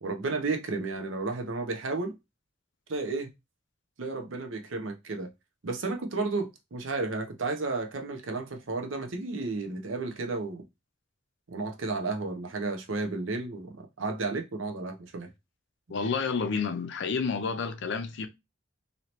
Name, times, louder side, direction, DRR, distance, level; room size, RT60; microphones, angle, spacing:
voice 1, 0.0-2.2 2.9-3.3 4.0-5.3 5.6-10.7 11.5-15.3, right 3 dB, 85° right, 0.7 m, -32 dB
voice 2, 15.9-18.3, left 5 dB, 65° left, 0.5 m, -30 dB
3.0 x 2.8 x 2.9 m
head